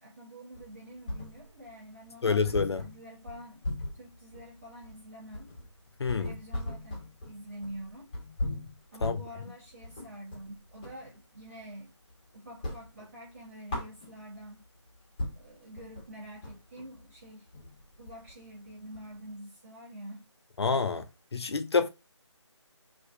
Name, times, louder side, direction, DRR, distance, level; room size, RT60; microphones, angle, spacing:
voice 1, 0.0-3.7 3.9-5.5 6.2-8.1 8.9-11.9 12.3-14.6 15.3-17.5 18.0-20.3, right 1 dB, 25° right, 0.7 m, -47 dB
sound 1, 0.5-1.7 2.0-2.1 2.4-11.0 11.4-12.2 12.5-14.5 14.9-15.0 15.2-19.3, left 1 dB, 15° left, 0.8 m, -39 dB
voice 2, 2.2-2.9 6.0-6.3 9.0-9.2 20.6-21.1 21.3-21.9, left 5 dB, 55° left, 0.5 m, -27 dB
2.4 x 2.2 x 2.4 m
figure-of-eight pair, 155°, 16 cm